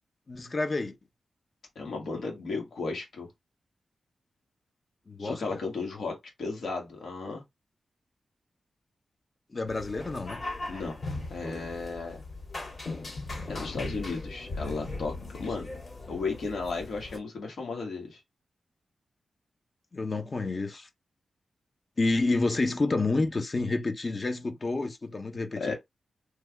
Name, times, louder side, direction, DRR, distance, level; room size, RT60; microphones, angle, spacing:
voice 1, 0.3-1.0 5.1-5.6 9.5-10.4 19.9-20.9 22.0-25.7, left 3 dB, 40° left, 0.7 m, -29 dB
voice 2, 1.7-3.3 5.2-7.4 10.7-11.0 11.3-12.2 13.5-15.7 16.1-18.2 25.6-25.7, left 4 dB, 75° left, 1.3 m, -34 dB
sound 1, 9.7-17.2, left 2 dB, 60° left, 2.0 m, -38 dB
3.3 x 2.3 x 3.4 m
cardioid pair, 75°, 0 cm